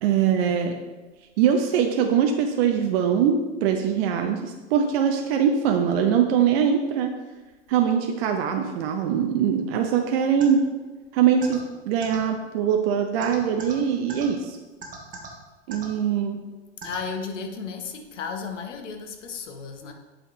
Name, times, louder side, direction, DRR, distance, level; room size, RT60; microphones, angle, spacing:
voice 1, 0.0-0.8 1.4-7.2 7.7-10.7 11.1-14.6 15.7-16.4, right 8 dB, 55° right, 4 dB, 0.7 m, -22 dB
sound 1, 10.4-10.5 11.4-11.6 12.0-12.2 13.2-13.7 14.1-14.2 14.8-15.3 15.7-15.9 16.8-17.0, right 5 dB, 20° right, 1.4 m, -37 dB
voice 2, 16.8-19.9, left 5 dB, 80° left, 5 dB, 0.9 m, -34 dB
7.8 x 4.3 x 3.2 m, 1.2 s
hypercardioid pair, 95°, 36 cm